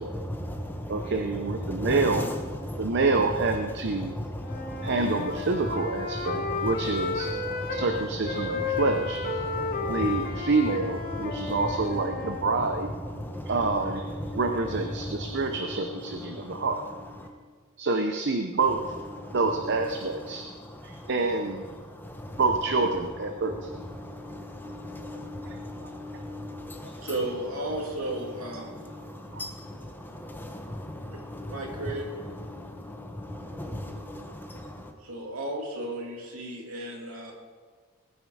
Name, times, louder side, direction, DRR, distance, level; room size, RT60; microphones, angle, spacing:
voice 1, 0.0-3.0 4.0-5.4 6.0-8.8 9.4-10.5 11.1-11.7 12.1-12.7 13.0-16.7 17.2-17.3 19.2-19.4 20.3-21.1 21.8-22.4 23.3-27.1 28.3-34.9, left 1 dB, 10° left, 3 dB, 1.1 m, -37 dB
voice 2, 0.9-2.3 2.8-4.2 4.8-7.3 7.7-9.4 9.9-12.9 13.5-16.8 17.8-18.8 19.3-20.5 20.8-21.7 22.4-23.7 25.5-25.9 26.8-27.1 29.3-29.4, right 3 dB, 55° right, 6 dB, 0.8 m, -27 dB
Wind instrument woodwind instrument, 4.4-7.9 8.2-12.5, left 4 dB, 45° left, 1.4 m, -33 dB
voice 3, 27.0-28.7 31.5-32.1 35.0-37.3, right 1 dB, 80° right, 0 dB, 2.8 m, -34 dB
19.5 x 9.0 x 4.9 m, 1.5 s
head